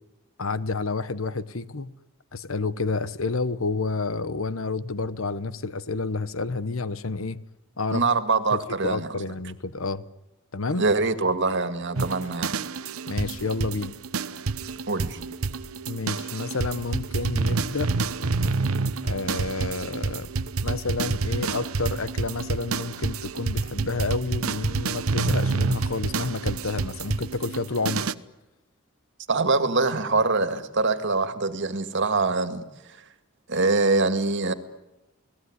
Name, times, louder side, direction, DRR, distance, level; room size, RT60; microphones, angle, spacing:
voice 1, 0.4-1.9 2.3-7.4 7.8-8.0 8.5-10.0 10.5-10.8 13.1-13.9 15.9-17.9 19.0-20.3 20.6-28.1, left 3 dB, 70° left, 1.1 m, -29 dB
voice 2, 7.9-9.2 10.7-12.6 14.9-15.2 29.3-32.6 33.5-34.5, right 3 dB, 60° right, 2.1 m, -24 dB
sound 1, 11.9-28.1, right 4 dB, 85° right, 1.0 m, -28 dB
29.5 x 19.0 x 9.8 m
head